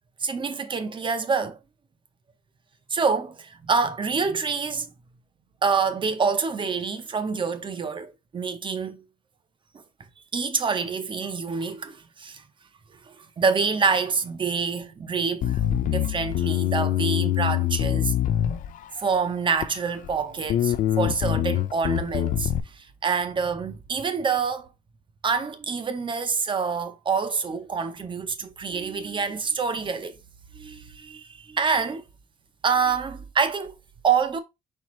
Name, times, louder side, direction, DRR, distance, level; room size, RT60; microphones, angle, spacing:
voice 1, 0.2-1.6 2.9-4.9 5.6-9.0 10.3-12.4 13.2-18.1 19.0-24.7 25.2-30.2 30.5-32.0 32.6-33.7 34.0-34.4, right 5 dB, 30° right, 0.7 m, -26 dB
Bass guitar, 15.4-19.0 19.6-20.2 20.5-22.6, left 12 dB, 50° left, 0.4 m, -24 dB
4.4 x 3.5 x 3.1 m
cardioid pair, 110°, 17 cm